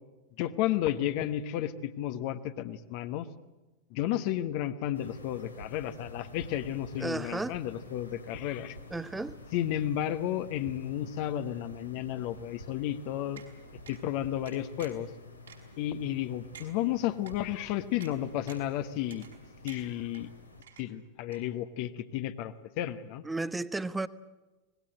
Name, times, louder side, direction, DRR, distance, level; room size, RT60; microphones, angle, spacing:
voice 1, 0.4-3.3 3.9-8.8 9.5-13.4 13.9-15.1 15.8-19.3 19.6-20.3 20.8-23.2, left 12 dB, 45° left, 1.2 m, -32 dB
sound 1, 4.9-20.6, left 1 dB, 85° left, 2.7 m, -49 dB
voice 2, 7.0-7.6 8.9-9.4 23.2-24.1, right 2 dB, 10° right, 0.9 m, -33 dB
sound 2, 13.4-13.5 13.9-14.0 14.5-15.1 15.5-15.6 16.1-16.2 16.5-16.7 17.3-17.4 18.0-18.1 18.5-18.7 19.1-19.4 19.7-20.2 20.6-21.1 21.3-21.4, right 8 dB, 70° right, 4.6 m, -50 dB
25.5 x 20.0 x 7.8 m
figure-of-eight pair, 90°, 0 cm